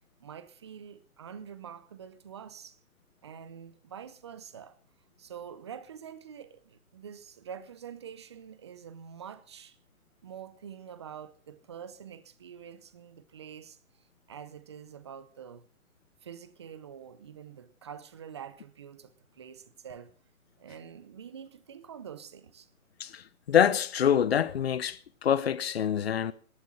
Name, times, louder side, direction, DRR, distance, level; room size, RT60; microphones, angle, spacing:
voice 1, 0.2-2.8 3.2-4.8 5.2-9.8 10.2-13.8 14.3-15.7 16.2-20.1 20.6-22.7, right 8 dB, 20° right, 0.7 m, -46 dB
voice 2, 23.0-26.3, left 9 dB, 45° left, 0.9 m, -26 dB
18.5 x 11.5 x 5.6 m
hypercardioid pair, 150°, 44 cm